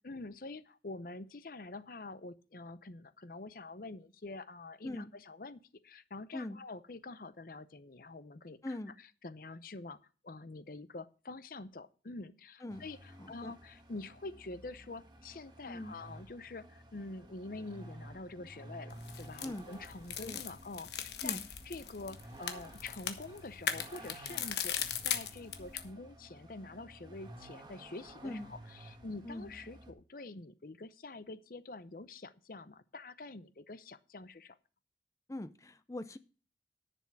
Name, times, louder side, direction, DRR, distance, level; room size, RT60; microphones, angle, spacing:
voice 1, 0.0-10.0 10.2-21.4 21.6-34.6, left 2 dB, 55° left, 14 dB, 0.7 m, -46 dB
voice 2, 8.6-9.0 12.6-12.8 13.2-13.5 15.6-16.0 19.4-19.7 20.2-20.4 21.2-21.4 28.2-28.5 29.2-29.5 35.3-36.2, left 1 dB, 20° left, 13 dB, 0.5 m, -41 dB
Vehicle, 12.7-29.9, right 1 dB, 25° right, 1.5 m, -53 dB
sound 1, 18.9-25.9, left 9 dB, 75° left, 1.3 m, -39 dB
10.5 x 7.0 x 6.0 m, 0.37 s
head